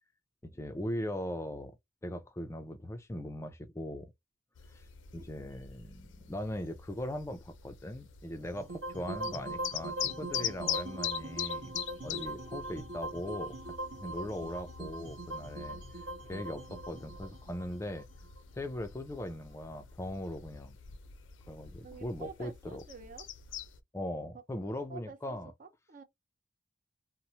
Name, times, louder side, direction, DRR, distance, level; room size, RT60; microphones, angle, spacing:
voice 1, 0.4-1.8 2.0-4.1 4.7-4.8 5.1-11.7 12.0-13.7 14.0-15.8 16.3-18.1 18.5-20.8 21.5-22.8 23.9-25.5, left 1 dB, 15° left, 0.3 m, -39 dB
sound 1, 4.6-23.8, left 9 dB, 70° left, 0.5 m, -43 dB
voice 2, 5.2-5.5 21.8-23.3 24.9-26.0, right 4 dB, 40° right, 0.5 m, -49 dB
sound 2, 8.6-18.8, right 2 dB, 60° right, 0.9 m, -41 dB
3.0 x 2.0 x 2.7 m
head